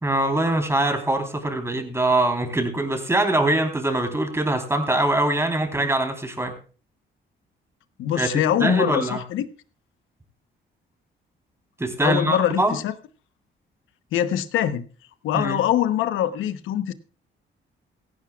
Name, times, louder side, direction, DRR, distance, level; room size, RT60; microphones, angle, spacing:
voice 1, 0.0-6.5 8.1-8.3 8.6-9.2 11.8-12.8 15.3-15.6, right 2 dB, 15° right, 5 dB, 3.8 m, -23 dB
voice 2, 8.0-9.5 12.0-12.9 14.1-14.8 15.2-16.9, left 11 dB, 85° left, 11 dB, 1.0 m, -23 dB
16.5 x 15.0 x 2.4 m, 0.37 s
cardioid pair, 90°, 20 cm